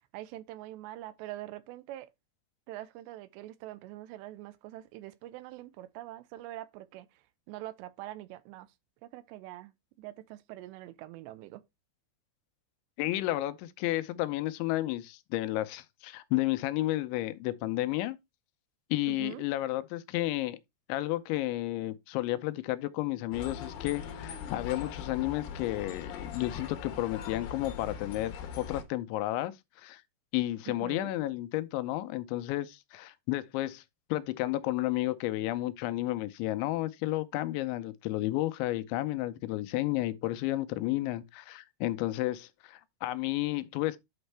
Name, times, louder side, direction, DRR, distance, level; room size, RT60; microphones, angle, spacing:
voice 1, 0.0-2.1 2.7-8.7 9.0-11.6 19.1-19.5 30.7-31.1, right 15 dB, 80° right, 2.7 m, -44 dB
voice 2, 13.0-18.2 18.9-20.6 20.9-30.0 30.3-33.8 34.1-44.0, left 16 dB, 85° left, 2.9 m, -32 dB
sound 1, 23.3-28.8, left 7 dB, 70° left, 2.9 m, -41 dB
8.8 x 5.2 x 3.3 m
omnidirectional pair, 5.2 m